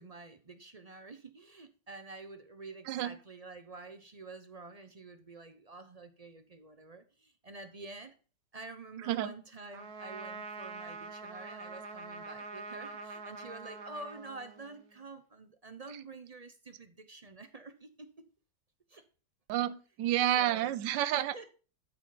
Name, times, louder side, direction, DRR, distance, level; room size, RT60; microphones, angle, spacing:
voice 1, 0.0-8.2 8.5-18.3 18.9-19.0 20.4-20.8 21.1-21.5, right 3 dB, 40° right, 0.5 m, -48 dB
Trumpet, 9.7-15.0, right 3 dB, 60° right, 1.5 m, -45 dB
voice 2, 19.5-21.5, right 12 dB, 85° right, 1.3 m, -30 dB
13.0 x 5.0 x 5.8 m
omnidirectional pair, 1.9 m